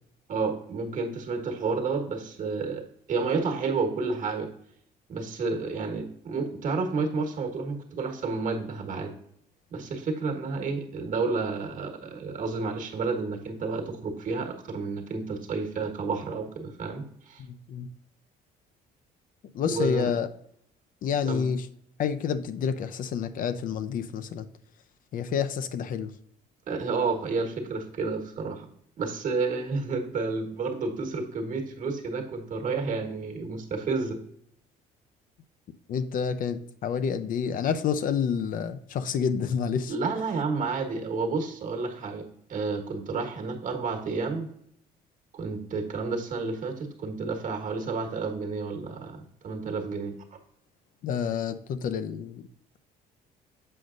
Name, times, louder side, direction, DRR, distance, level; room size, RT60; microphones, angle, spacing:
voice 1, 0.3-4.5 5.1-9.1 9.7-17.4 19.7-20.1 21.3-21.4 26.7-28.7 29.0-34.2 39.9-42.2 42.5-44.5 45.3-50.1, right 4 dB, 50° right, 4 dB, 1.4 m, -30 dB
voice 2, 17.4-17.9 19.5-20.3 21.0-21.7 22.0-24.5 25.1-26.1 35.9-39.9 51.0-52.4, left 7 dB, 55° left, 11 dB, 0.6 m, -29 dB
7.7 x 5.2 x 2.5 m, 0.69 s
cardioid pair, 110°, 17 cm